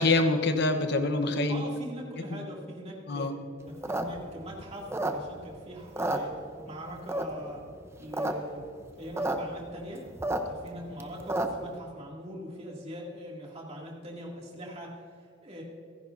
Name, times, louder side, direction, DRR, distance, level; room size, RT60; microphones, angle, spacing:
voice 1, 0.0-1.6 2.3-2.5 3.1-3.3, left 2 dB, 60° left, 7 dB, 1.1 m, -25 dB
voice 2, 1.5-3.3 3.7-6.3 6.6-7.6 8.0-8.7 9.0-10.0 10.5-14.9 15.4-15.6, equal, 35° right, -3 dB, 2.6 m, -42 dB
sound 1, 3.7-5.5 5.8-6.7 7.1-7.5 7.9-8.3 8.6-8.7 8.8-9.4 9.7-11.7, right 1 dB, 15° right, 0.8 m, -31 dB
29.0 x 10.5 x 2.7 m, 2.3 s
head